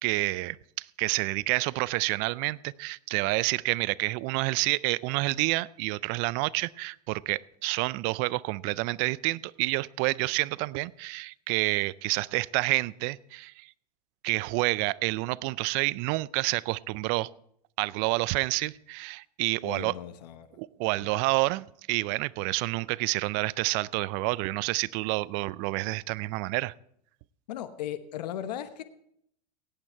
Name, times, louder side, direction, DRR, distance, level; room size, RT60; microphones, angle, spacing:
voice 1, 0.0-13.7 14.2-17.3 17.8-19.9 20.6-26.7, right 22 dB, 50° right, 21 dB, 0.4 m, -29 dB
voice 2, 19.6-20.6 21.0-21.2 27.5-28.8, left 11 dB, 80° left, 11 dB, 1.0 m, -37 dB
17.5 x 8.6 x 4.5 m, 0.71 s
hypercardioid pair, 110°, 21 cm